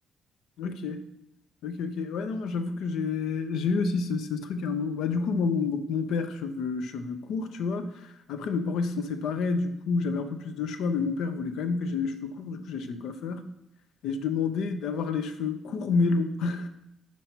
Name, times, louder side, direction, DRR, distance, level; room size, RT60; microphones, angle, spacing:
voice 1, 0.6-1.0 1.6-13.4 14.0-16.7, left 4 dB, 85° left, 9 dB, 0.6 m, -29 dB
5.2 x 4.6 x 4.3 m, 0.86 s
cardioid pair, 90°, 0 cm